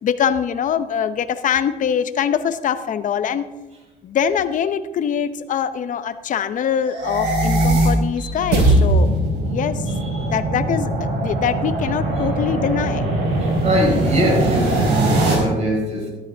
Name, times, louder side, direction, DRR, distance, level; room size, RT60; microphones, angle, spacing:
voice 1, 0.0-3.5 4.0-9.1 9.4-9.9 10.3-13.1, left 8 dB, 50° left, 12 dB, 0.8 m, -23 dB
sound 1, 6.8-15.3, right 2 dB, 85° right, 4.5 m, -20 dB
voice 2, 13.4-16.1, equal, 40° right, -1 dB, 5.0 m, -22 dB
13.0 x 13.0 x 3.5 m, 1.1 s
cardioid pair, 110°, 17 cm